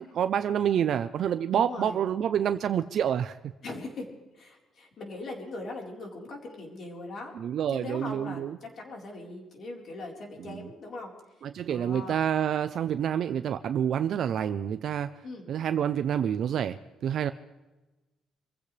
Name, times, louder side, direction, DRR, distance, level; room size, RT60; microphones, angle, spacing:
voice 1, 0.0-3.4 7.4-8.6 10.5-10.6 11.4-15.1 15.5-17.3, right 9 dB, 50° right, 10 dB, 0.6 m, -28 dB
voice 2, 1.5-2.0 3.6-4.1 4.3-7.3 7.7-11.1 11.7-12.2 15.2-15.4, left 2 dB, 40° left, 0 dB, 4.2 m, -40 dB
26.5 x 15.5 x 3.3 m, 1.1 s
cardioid pair, 165°, 0 cm